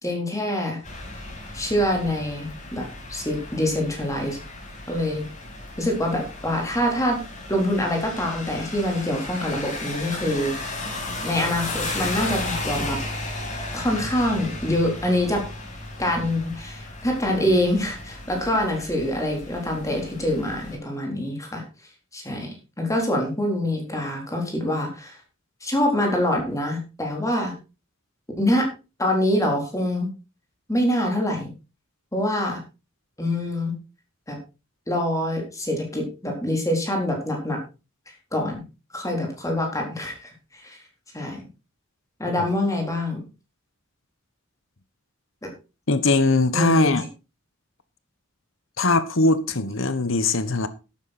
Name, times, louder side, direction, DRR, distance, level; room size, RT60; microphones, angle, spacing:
voice 1, 0.0-0.8 1.5-4.4 4.9-5.2 5.8-7.2 7.5-10.8 11.2-13.0 13.7-15.4 16.0-21.6 22.1-25.2 25.6-27.5 28.4-28.7 29.0-30.1 30.7-31.5 32.1-32.6 33.2-33.7 34.3-34.4 34.9-37.6 38.1-38.6 38.9-40.8 41.1-41.4 42.2-43.2 45.4-45.5 46.5-47.0, left 1 dB, 15° left, 3.8 m, -25 dB
sound 1, 0.8-20.8, left 2 dB, 35° left, 5.7 m, -35 dB
voice 2, 45.9-47.0 48.8-50.7, left 2 dB, 65° left, 1.3 m, -20 dB
12.0 x 9.4 x 4.3 m
head